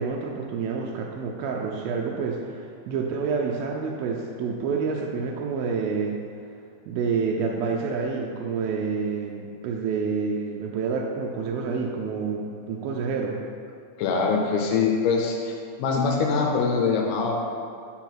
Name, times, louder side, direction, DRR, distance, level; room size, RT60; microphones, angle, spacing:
voice 1, 0.0-6.2 6.9-13.4, right 5 dB, 80° right, 0 dB, 2.2 m, -28 dB
voice 2, 14.0-15.5 15.8-17.4, left 5 dB, 85° left, -1 dB, 2.7 m, -23 dB
5.9 x 4.5 x 5.7 m, 2.3 s
omnidirectional pair, 4.5 m